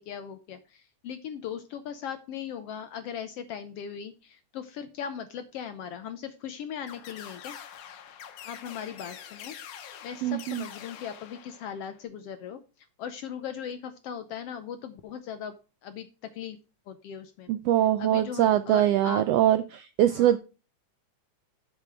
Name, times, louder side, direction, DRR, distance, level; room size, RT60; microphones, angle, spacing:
voice 1, 0.0-7.6 8.4-9.6 10.0-12.6 13.0-15.5 15.8-16.1 16.3-16.6 16.9-17.5 18.0-19.2 20.1-20.3, left 8 dB, 70° left, 10 dB, 1.5 m, -38 dB
sound 1, 6.9-12.0, left 9 dB, 90° left, 2.6 m, -45 dB
voice 2, 10.2-10.6 17.5-20.4, right 12 dB, 80° right, 12 dB, 1.4 m, -23 dB
8.3 x 7.4 x 4.6 m, 0.32 s
omnidirectional pair, 3.4 m